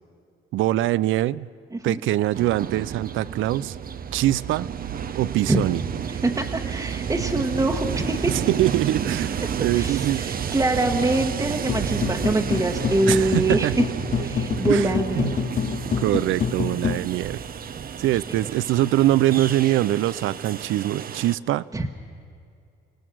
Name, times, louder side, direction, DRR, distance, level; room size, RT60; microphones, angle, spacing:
voice 1, 0.5-1.5 1.8-3.8 4.1-4.7 5.1-5.8 7.4-7.5 8.3-10.3 13.1-13.7 14.2-14.3 14.7-15.3 16.0-17.4 18.0-21.6, right 14 dB, 80° right, 19 dB, 0.5 m, -23 dB
Train, 2.3-21.4, right 7 dB, 45° right, 0.8 m, -31 dB
voice 2, 6.2-8.3 9.7-13.8 14.2-15.3 21.7-22.0, right 2 dB, 15° right, 0 dB, 1.3 m, -24 dB
sound 1, 11.7-17.0, left 7 dB, 40° left, 0.8 m, -27 dB
26.5 x 17.5 x 6.3 m, 2.5 s
cardioid pair, 90°, 20 cm